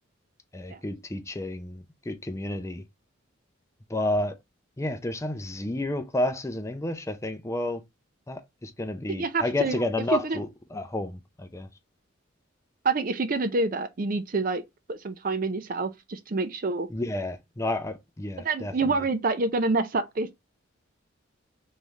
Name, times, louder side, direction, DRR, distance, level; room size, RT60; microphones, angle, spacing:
voice 1, 0.5-2.8 3.9-4.4 4.8-7.8 8.3-11.7 16.9-18.9, left 1 dB, 15° left, 0.5 m, -30 dB
voice 2, 9.1-9.8 10.1-10.4 12.8-14.6 14.9-16.9 18.4-20.3, right 3 dB, 40° right, 0.5 m, -27 dB
3.5 x 3.2 x 4.0 m
head